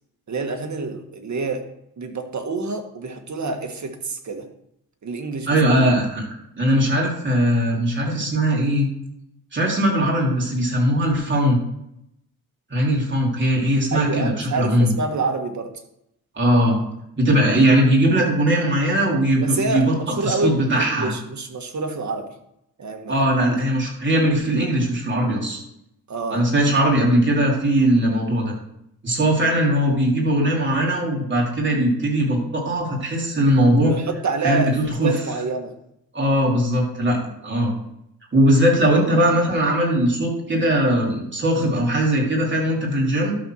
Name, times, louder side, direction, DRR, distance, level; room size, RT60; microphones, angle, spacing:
voice 1, 0.3-1.7 2.0-4.5 5.0-5.5 13.9-15.7 19.4-22.3 22.8-23.4 26.1-26.5 33.9-34.7 35.0-35.7, right 3 dB, 50° right, 4 dB, 1.6 m, -27 dB
voice 2, 5.5-6.2 6.6-8.9 9.5-11.6 12.7-14.9 16.4-16.8 17.2-19.9 20.2-21.1 23.1-25.6 26.3-28.5 29.0-34.0 34.4-35.1 36.1-37.7 38.3-43.4, right 1 dB, 30° right, -3 dB, 3.8 m, -19 dB
12.0 x 4.3 x 6.4 m, 0.79 s
cardioid pair, 105°, 36 cm